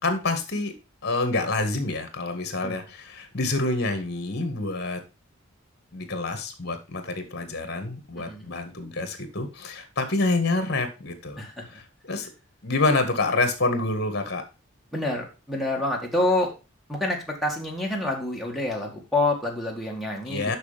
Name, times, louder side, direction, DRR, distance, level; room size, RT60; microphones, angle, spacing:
voice 1, 0.0-0.7 1.0-5.0 5.9-11.4 11.7-12.3 12.6-14.4 20.3-20.6, left 2 dB, 50° left, 7 dB, 1.8 m, -27 dB
voice 2, 11.4-11.8 14.9-16.5 16.9-20.6, left 2 dB, ahead, 0 dB, 2.1 m, -27 dB
6.7 x 5.9 x 5.1 m, 0.29 s
head